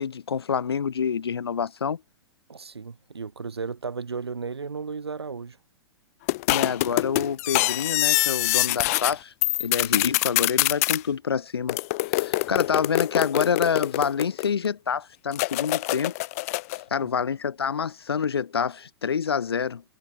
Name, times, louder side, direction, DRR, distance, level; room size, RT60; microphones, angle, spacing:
voice 1, 0.0-2.0 6.5-9.3 9.6-11.8 12.1-16.1 16.9-19.8, left 6 dB, 65° left, 0.9 m, -27 dB
voice 2, 2.5-5.6 16.7-17.1, right 5 dB, 70° right, 4.2 m, -35 dB
sound 1, 6.3-9.1 9.4-11.0 11.7-14.7 15.3-16.8, left 21 dB, 35° left, 0.4 m, -25 dB
figure-of-eight pair, 110°, 14 cm